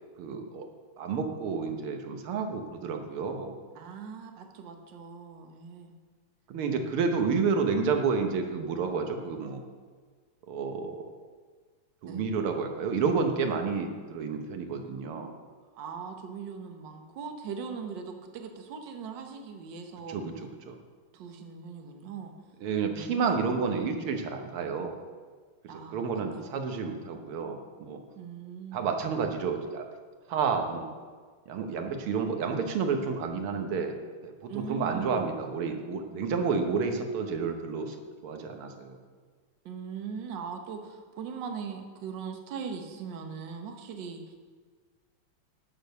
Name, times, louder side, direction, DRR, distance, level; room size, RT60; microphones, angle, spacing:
voice 1, 0.2-0.7 1.0-3.5 6.5-9.6 10.5-11.1 12.0-15.3 20.1-20.7 22.6-25.0 25.9-28.0 28.7-29.9 30.3-30.9 31.5-34.0 34.2-38.0 38.2-39.0, right 5 dB, 80° right, 5 dB, 2.0 m, -30 dB
voice 2, 3.7-5.9 6.7-7.1 12.0-12.3 15.7-20.2 21.1-22.3 22.9-23.6 25.7-26.6 28.2-28.9 34.5-35.2 39.6-44.2, right 6 dB, 60° right, 4 dB, 1.6 m, -40 dB
10.0 x 6.5 x 6.6 m, 1.5 s
omnidirectional pair, 2.4 m